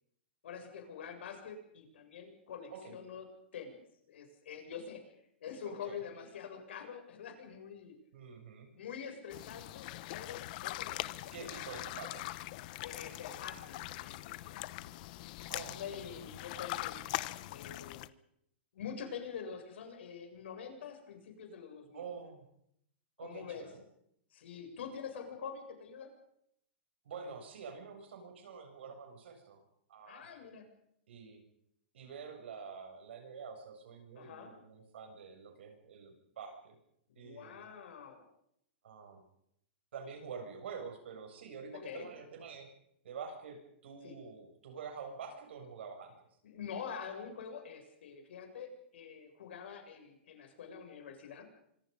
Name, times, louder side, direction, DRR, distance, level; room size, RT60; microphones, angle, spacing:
voice 1, 0.4-3.3 3.5-3.8 4.1-5.1 5.4-7.9 8.7-11.5 12.8-14.8 15.7-17.0 17.5-18.1 18.7-22.0 23.2-23.7 24.3-26.1 30.0-30.7 34.2-34.5 37.1-38.2 41.7-42.1 44.0-44.1 46.4-51.5, left 7 dB, 75° left, 4 dB, 7.3 m, -46 dB
voice 2, 8.1-8.7 11.3-12.3 15.5-16.0 21.9-22.5 23.2-23.8 27.0-29.6 29.9-30.3 31.1-31.4 31.9-36.8 37.2-37.6 38.8-39.2 39.9-42.7 43.0-46.1, right 5 dB, 75° right, 5 dB, 7.5 m, -47 dB
sound 1, 9.3-18.1, left 17 dB, 45° left, 1.0 m, -42 dB
26.0 x 24.5 x 5.5 m, 0.74 s
hypercardioid pair, 160°, 6 cm